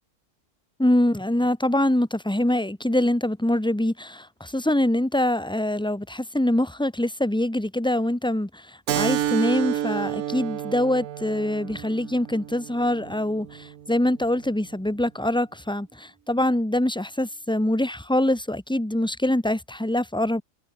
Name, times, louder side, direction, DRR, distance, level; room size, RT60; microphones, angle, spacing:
voice 1, 0.8-8.6 8.9-20.4, left 1 dB, 5° left, 1.2 m, -24 dB
Keyboard (musical), 8.9-14.0, right 11 dB, 90° right, 1.2 m, -30 dB
omnidirectional pair, 1.4 m